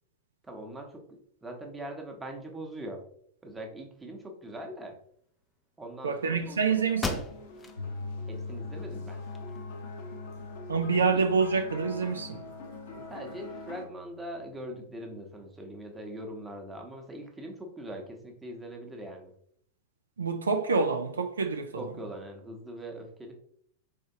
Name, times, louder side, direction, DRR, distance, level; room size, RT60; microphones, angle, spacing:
voice 1, 0.4-3.0 3.4-5.0 5.8-6.8 8.3-9.2 11.1-11.2 12.9-19.3 21.8-23.3, right 1 dB, 10° right, 0.9 m, -42 dB
voice 2, 6.0-7.3 10.7-12.4 20.2-21.8, right 5 dB, 70° right, 0.3 m, -27 dB
sound 1, 6.3-13.8, left 3 dB, 55° left, 0.7 m, -45 dB
sound 2, 6.4-6.5 7.0-7.8 8.3-8.4 8.9-9.8, left 3 dB, 15° left, 0.5 m, -36 dB
Piano, 7.8-15.9, left 3 dB, 80° left, 0.3 m, -43 dB
4.4 x 3.2 x 2.7 m
figure-of-eight pair, 90°, 0 cm